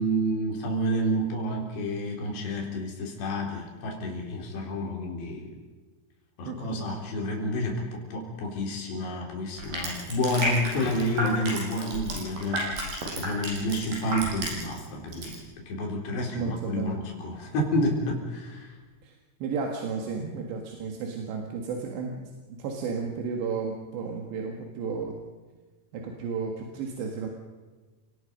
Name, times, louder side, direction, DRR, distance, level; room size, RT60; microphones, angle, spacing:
voice 1, 0.0-5.5 6.4-15.4 15.7-18.7 20.2-20.3, equal, 75° left, 0 dB, 5.8 m, -29 dB
voice 2, 6.5-6.9 16.3-17.0 19.0-19.2 19.4-25.2 25.9-27.3, right 5 dB, 85° right, 1 dB, 4.0 m, -33 dB
Crushing, 9.6-14.9 15.1-15.4, right 1 dB, 60° right, 6.8 m, -31 dB
29.5 x 19.0 x 5.3 m, 1.3 s
omnidirectional pair, 4.9 m